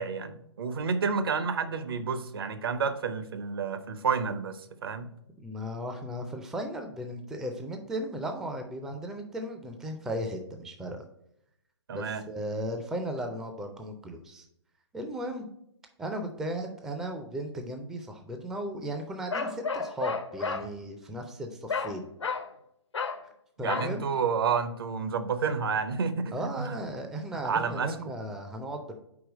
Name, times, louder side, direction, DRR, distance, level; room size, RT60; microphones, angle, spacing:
voice 1, 0.0-5.1 11.9-12.2 23.6-26.4 26.6-26.7 27.4-28.1, right 5 dB, 55° right, 10 dB, 0.7 m, -30 dB
voice 2, 5.4-11.0 11.9-14.5 14.9-15.5 16.0-22.1 23.6-24.0 26.3-29.0, right 1 dB, 5° right, 5 dB, 0.4 m, -36 dB
Bark, 19.3-20.7 21.7-22.0 22.2-22.5 22.9-23.2 23.7-23.9, left 5 dB, 75° left, 0.6 m, -31 dB
4.8 x 4.4 x 5.1 m, 0.76 s
figure-of-eight pair, 130°, 15 cm